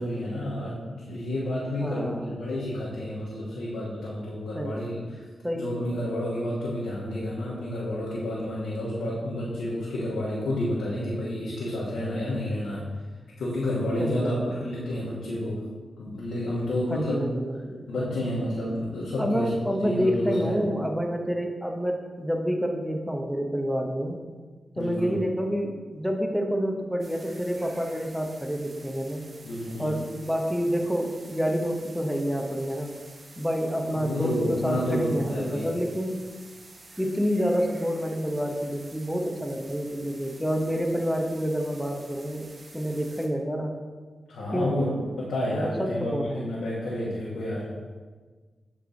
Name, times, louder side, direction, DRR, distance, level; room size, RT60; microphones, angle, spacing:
voice 1, 0.0-5.2 5.5-12.9 13.4-15.7 16.0-17.2 17.9-19.5 19.8-20.6 24.7-25.2 29.4-30.0 33.9-35.7 44.3-47.7, left 1 dB, 90° left, -8 dB, 1.2 m, -30 dB
voice 2, 1.8-2.2 4.5-4.9 5.4-5.7 14.0-14.7 14.9-15.0 16.9-17.9 19.2-24.2 24.8-29.3 29.8-32.9 33.4-36.1 37.0-42.5 42.7-43.8 44.5-44.7 45.5-46.5, equal, ahead, 3 dB, 0.9 m, -28 dB
sound 1, 27.0-43.3, right 2 dB, 50° right, 1.0 m, -49 dB
7.5 x 3.4 x 3.9 m, 1.4 s
cardioid pair, 55°, 0 cm